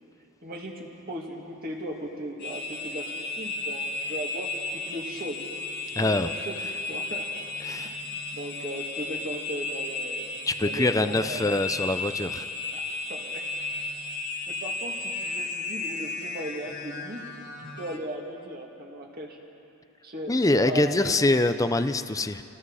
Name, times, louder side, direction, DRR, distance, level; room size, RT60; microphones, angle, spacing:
voice 1, 0.4-5.4 6.0-6.6 6.9-7.3 7.8-11.5 12.7-13.5 14.5-17.2 17.8-19.4 20.0-21.1, right 1 dB, 40° right, -1 dB, 2.6 m, -37 dB
sound 1, 2.4-18.0, left 2 dB, 50° left, 1.7 m, -34 dB
voice 2, 6.0-6.3 7.6-8.0 10.5-12.5 20.3-22.4, left 2 dB, 15° left, 10 dB, 0.5 m, -24 dB
29.5 x 19.0 x 4.9 m, 2.8 s
head